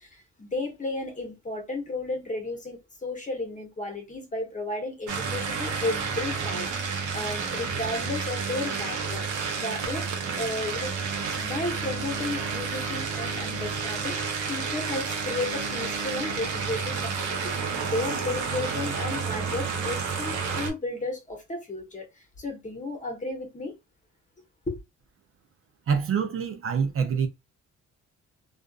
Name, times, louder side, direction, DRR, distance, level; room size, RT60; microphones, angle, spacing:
voice 1, 0.0-9.2 9.6-10.1 10.3-11.1 11.4-23.7 24.7-24.8, left 2 dB, 25° left, 1.0 m, -33 dB
sound 1, 5.1-20.7, right 5 dB, 80° right, 1.0 m, -30 dB
voice 2, 25.9-27.3, right 6 dB, 45° right, 0.6 m, -25 dB
2.5 x 2.4 x 2.3 m
cardioid pair, 90°, 30 cm